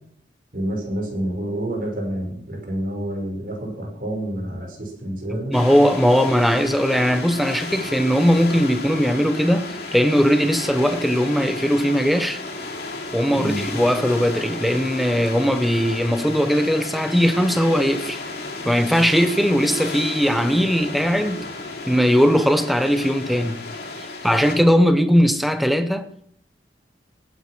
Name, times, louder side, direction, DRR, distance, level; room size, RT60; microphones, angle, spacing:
voice 1, 0.5-5.5 13.3-13.6, right 1 dB, 50° right, 5.7 m, -28 dB
sound 1, 5.5-24.5, left 3 dB, 65° left, 3.3 m, -33 dB
voice 2, 5.5-12.4 13.1-18.2 18.6-21.4 21.9-23.7 24.0-26.3, equal, ahead, 1.0 m, -19 dB
19.0 x 9.4 x 6.1 m
head